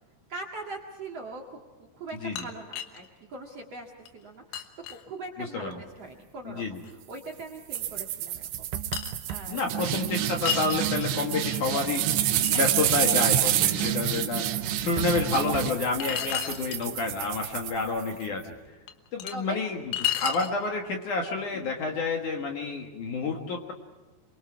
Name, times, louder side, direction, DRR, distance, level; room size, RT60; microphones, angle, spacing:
voice 1, 0.3-6.8 7.1-8.8 9.3-9.9 12.4-12.9 13.9-14.3 16.1-16.3 19.3-19.7 21.5-21.7, right 3 dB, 45° right, 0 dB, 2.3 m, -41 dB
sound 1, 2.1-3.1 3.6-3.7 4.1-4.2 4.5-5.0 6.8-6.9 7.8-7.9 8.9-9.4 9.9-11.4 11.9-12.6 13.1-13.4 13.8-13.9 14.4-14.5 16.0-16.9 18.2-18.3 18.9-19.3 19.9-20.5, left 11 dB, 80° left, 3.4 m, -33 dB
voice 2, 5.4-5.8 6.5-6.8 9.5-12.1 12.5-14.5 14.8-18.5 19.1-23.7, left 3 dB, 60° left, 2 dB, 2.5 m, -29 dB
sound 2, 7.7-18.2, right 12 dB, 80° right, 2.9 m, -28 dB
29.0 x 23.5 x 4.7 m, 1.2 s
omnidirectional pair, 5.0 m